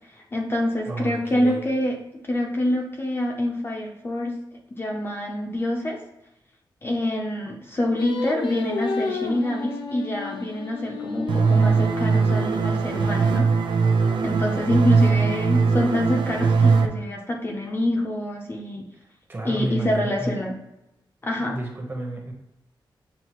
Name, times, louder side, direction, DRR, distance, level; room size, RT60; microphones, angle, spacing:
voice 1, 0.3-2.0 2.3-4.4 4.7-6.0 6.8-13.5 14.2-18.9 19.4-20.6 21.2-21.6, left 1 dB, 30° left, 0 dB, 0.5 m, -26 dB
voice 2, 0.9-1.6 19.3-20.4 21.4-22.3, right 2 dB, 25° right, 0 dB, 1.0 m, -31 dB
Singing, 8.0-13.2, left 4 dB, 75° left, 0.7 m, -32 dB
sound 1, 11.3-16.9, right 5 dB, 75° right, 0.5 m, -20 dB
7.2 x 2.4 x 3.0 m, 0.88 s
wide cardioid pair, 175°, 8 cm